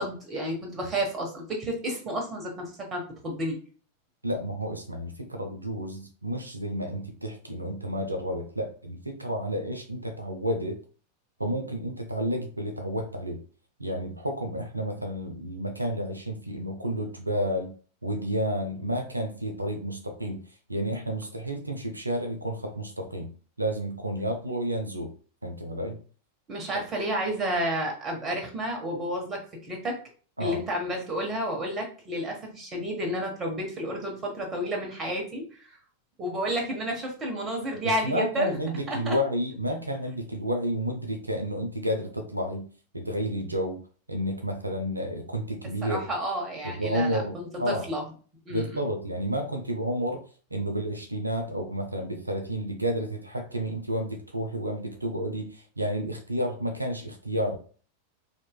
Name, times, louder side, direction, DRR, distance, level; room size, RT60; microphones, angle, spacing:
voice 1, 0.0-3.6 26.5-29.9 30.4-35.8 36.2-38.6 38.9-39.2 45.8-48.0 48.4-48.8, equal, 25° right, 1 dB, 1.2 m, -31 dB
voice 2, 4.2-10.8 11.4-13.4 13.8-17.7 18.0-23.3 23.6-25.1 25.4-26.0 30.4-30.6 37.8-42.7 42.9-43.8 44.1-46.1 46.6-47.8 48.5-57.6, equal, 85° right, 4 dB, 0.4 m, -31 dB
4.4 x 2.8 x 2.2 m, 0.40 s
figure-of-eight pair, 90°, 0 cm